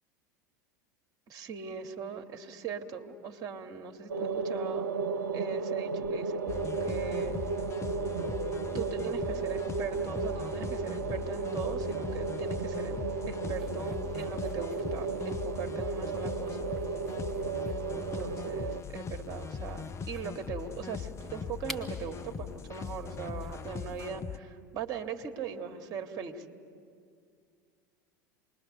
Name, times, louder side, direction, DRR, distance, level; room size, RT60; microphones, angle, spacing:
voice 1, 1.3-4.9 5.3-7.4 8.7-16.7 17.9-26.4, right 6 dB, 40° right, 5 dB, 1.8 m, -40 dB
sound 1, 4.1-18.8, right 4 dB, 70° right, 0.6 m, -34 dB
sound 2, 6.5-24.4, left 6 dB, 25° left, 0.8 m, -40 dB
sound 3, 13.5-24.1, right 1 dB, ahead, 1.9 m, -52 dB
27.5 x 21.0 x 6.8 m, 2.3 s
figure-of-eight pair, 75°, 10 cm